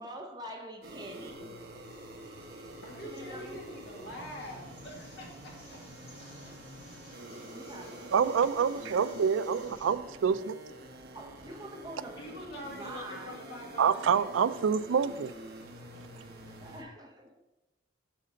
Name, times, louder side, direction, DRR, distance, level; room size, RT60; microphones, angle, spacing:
voice 1, 0.0-1.6 2.2-2.7 3.0-3.7 6.4-6.6 6.9-7.0 7.3-8.5 9.7-9.9 11.1-13.4 15.8-17.4, right 1 dB, 20° right, 0.8 m, -46 dB
sound 1, 0.8-16.8, right 1 dB, 55° right, 1.1 m, -47 dB
sound 2, 1.8-9.9, left 2 dB, 35° left, 2.7 m, -58 dB
voice 2, 2.8-5.3 5.7-5.8 12.2-14.6, left 1 dB, 60° left, 2.2 m, -45 dB
voice 3, 8.1-10.6 13.8-15.3, right 6 dB, 85° right, 0.4 m, -27 dB
7.7 x 4.2 x 6.4 m
head